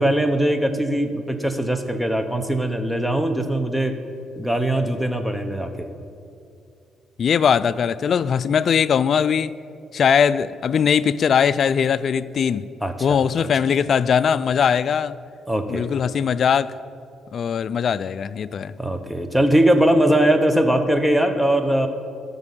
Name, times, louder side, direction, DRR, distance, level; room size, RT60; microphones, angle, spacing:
voice 1, 0.0-4.0 4.4-5.9 12.8-13.5 15.5-15.8 18.8-21.9, right 1 dB, 5° right, 7 dB, 1.1 m, -21 dB
voice 2, 7.2-9.5 9.9-12.7 13.0-15.2 15.7-16.7 17.3-18.7, left 7 dB, 55° left, 14 dB, 0.3 m, -20 dB
13.5 x 5.3 x 9.1 m, 2.4 s
cardioid pair, 90°, 0 cm